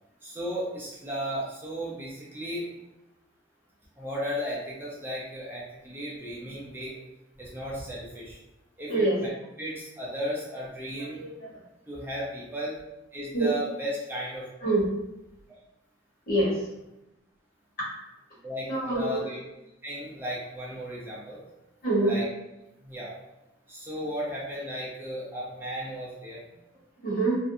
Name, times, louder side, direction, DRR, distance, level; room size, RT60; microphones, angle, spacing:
voice 1, 0.2-2.7 4.0-7.0 7.4-8.4 8.8-9.1 9.6-11.3 11.9-12.7 13.1-14.5 18.4-19.4 19.8-21.4 22.0-22.3 22.8-23.1 23.7-26.4, equal, 10° right, -6 dB, 0.5 m, -35 dB
voice 2, 11.0-11.6 13.3-13.5 14.6-14.8 16.3-16.6 18.7-19.3 21.8-22.1 27.0-27.4, right 2 dB, 50° left, -7 dB, 1.1 m, -25 dB
2.5 x 2.2 x 2.6 m, 0.94 s
head